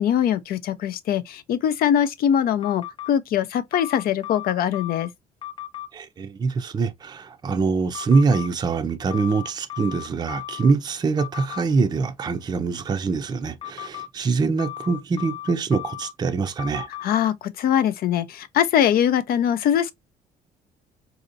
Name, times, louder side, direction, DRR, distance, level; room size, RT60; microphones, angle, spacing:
voice 1, 0.0-5.1 17.0-19.9, left 9 dB, 65° left, 0.6 m, -22 dB
sound 1, 2.6-3.1 3.7-5.1 5.4-5.9 7.9-8.5 9.1-10.7 11.2-11.6 13.6-14.1 14.6-16.1 16.6-17.0, left 14 dB, 30° left, 0.7 m, -35 dB
voice 2, 5.9-16.9, right 4 dB, 25° right, 0.5 m, -24 dB
4.1 x 2.8 x 2.5 m
cardioid pair, 110°, 17 cm